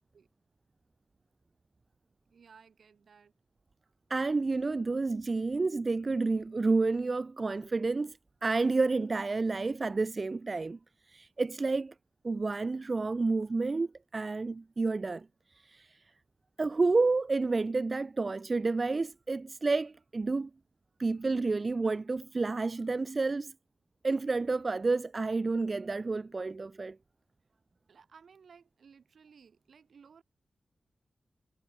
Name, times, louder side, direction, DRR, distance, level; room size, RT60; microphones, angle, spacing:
voice 1, 2.3-3.3 27.9-30.2, right 6 dB, 80° right, 2.9 m, -58 dB
voice 2, 4.1-10.8 11.1-11.9 12.2-15.3 15.6-16.0 16.6-20.5 21.0-23.5 24.0-27.0, right 3 dB, 45° right, 0.5 m, -30 dB
cardioid pair, 60°, 0 cm